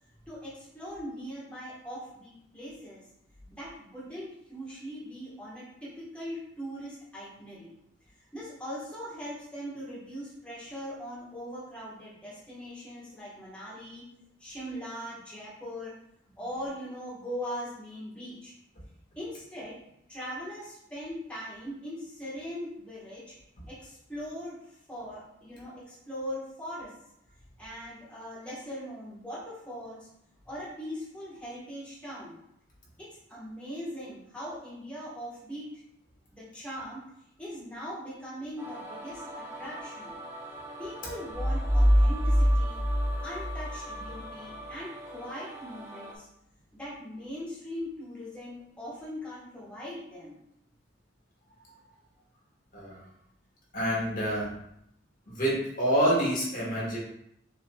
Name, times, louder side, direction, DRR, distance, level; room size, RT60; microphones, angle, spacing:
voice 1, 0.3-3.0 3.5-7.7 8.3-14.0 14.4-16.0 16.4-18.5 19.1-19.8 20.1-23.4 23.7-26.9 27.6-30.1 30.4-32.4 33.0-35.8 36.3-37.0 37.4-40.2 40.8-42.9 43.2-46.3 46.7-50.4, equal, 5° left, -8 dB, 1.3 m, -40 dB
sound 1, 38.6-46.1, right 1 dB, 10° right, 0.7 m, -42 dB
sound 2, 41.3-44.1, equal, 50° right, 1.7 m, -24 dB
voice 2, 52.7-53.0 53.7-54.6 55.3-57.0, equal, 40° left, -5 dB, 1.6 m, -27 dB
6.7 x 3.4 x 2.3 m, 0.75 s
head